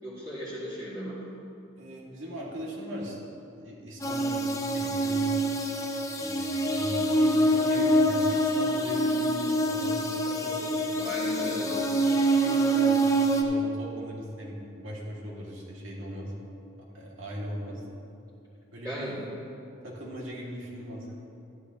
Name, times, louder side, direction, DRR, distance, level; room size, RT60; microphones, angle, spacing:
voice 1, 0.0-1.2 11.0-11.7 18.8-19.1, equal, 20° right, -12 dB, 2.2 m, -36 dB
voice 2, 1.8-3.2 3.6-5.5 6.2-10.8 11.4-16.3 16.9-17.8 18.7-19.3 19.8-21.1, equal, 70° right, -4 dB, 2.2 m, -39 dB
sound 1, 4.0-13.4, right 1 dB, 15° left, 0.6 m, -25 dB
13.5 x 11.5 x 3.0 m, 2.7 s
head